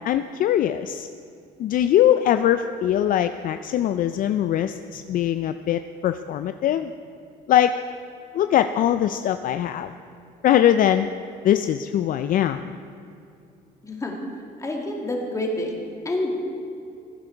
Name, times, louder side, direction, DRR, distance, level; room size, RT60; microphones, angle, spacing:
voice 1, 0.0-1.1 1.6-6.9 7.5-7.7 8.3-10.0 10.4-11.1 11.4-12.8, left 11 dB, 55° left, 10 dB, 0.4 m, -21 dB
voice 2, 13.8-14.1 14.6-15.7 16.0-16.4, left 1 dB, 20° left, 0 dB, 2.2 m, -27 dB
16.0 x 9.3 x 4.5 m, 2.7 s
cardioid pair, 110°, 17 cm